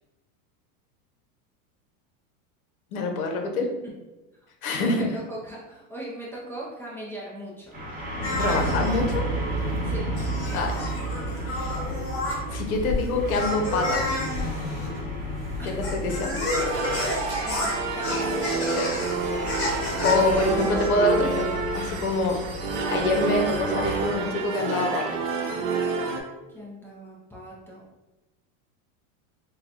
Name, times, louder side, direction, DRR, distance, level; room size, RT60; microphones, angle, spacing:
voice 1, 2.9-3.7 4.6-5.0 8.4-9.2 10.5-10.7 11.5-11.7 12.5-14.1 15.7-16.4 18.8-18.9 20.0-21.5 21.7-22.4 22.9-25.0, left 2 dB, 85° left, 3 dB, 0.9 m, -25 dB
voice 2, 4.8-7.8 9.8-10.2 10.5-12.0 15.6-15.9 16.7-18.8 20.4-20.9 26.5-27.8, right 1 dB, 5° left, -7 dB, 0.4 m, -40 dB
sound 1, 7.7-24.1, equal, 20° right, 0.9 m, -33 dB
sound 2, 8.2-20.9, left 1 dB, 30° left, 1.5 m, -31 dB
sound 3, 16.6-26.2, right 4 dB, 65° right, 0.7 m, -29 dB
3.7 x 2.2 x 2.8 m, 1.1 s
supercardioid pair, 120°, 42 cm